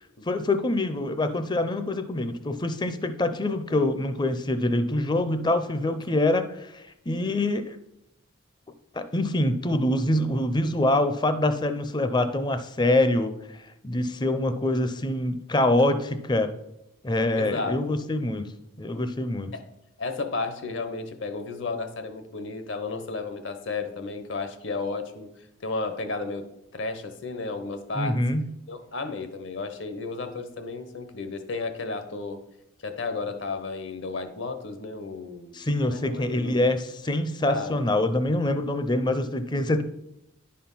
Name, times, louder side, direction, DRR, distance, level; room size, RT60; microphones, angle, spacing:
voice 1, 0.3-7.8 8.9-13.3 13.8-16.5 17.0-18.5 18.8-19.5 27.9-28.4 35.5-39.8, left 1 dB, 20° left, 10 dB, 0.5 m, -25 dB
voice 2, 17.3-18.0 19.5-19.7 20.0-28.2 28.7-32.4 32.8-35.6 35.9-36.7 37.5-37.9, left 3 dB, 60° left, 9 dB, 0.9 m, -33 dB
10.5 x 4.3 x 5.5 m, 0.84 s
head